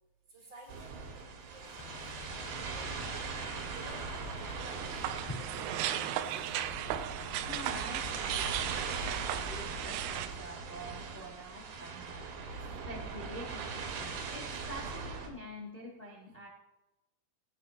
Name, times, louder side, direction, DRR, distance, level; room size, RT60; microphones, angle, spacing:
voice 1, 0.3-3.0 3.3-4.2 4.6-5.5 5.8-6.7 12.6-12.7, right 1 dB, 25° right, -2 dB, 2.9 m, -55 dB
sound 1, 0.7-15.3, right 4 dB, 70° right, 4.1 m, -40 dB
sound 2, 1.6-9.9, left 8 dB, 80° left, 2.7 m, -51 dB
sound 3, 4.4-10.3, right 12 dB, 90° right, 3.5 m, -36 dB
voice 2, 7.3-12.6 12.8-16.5, equal, 45° left, -4 dB, 0.7 m, -47 dB
21.0 x 9.7 x 3.0 m, 0.99 s
omnidirectional pair, 5.9 m